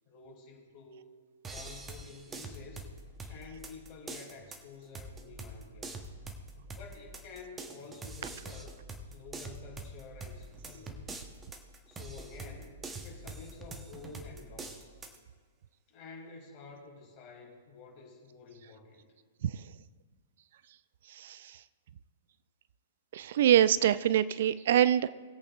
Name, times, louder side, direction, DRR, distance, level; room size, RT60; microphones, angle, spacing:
voice 1, 0.1-1.1 1.5-2.9 3.3-6.1 6.7-8.8 9.1-11.1 11.9-14.9 15.9-19.1, left 4 dB, 40° left, 0 dB, 3.0 m, -50 dB
sound 1, 1.4-15.2, right 2 dB, 15° right, 1.1 m, -45 dB
voice 2, 23.1-25.1, right 11 dB, 55° right, 17 dB, 0.3 m, -24 dB
20.0 x 8.4 x 2.5 m, 1.5 s
figure-of-eight pair, 110°, 0 cm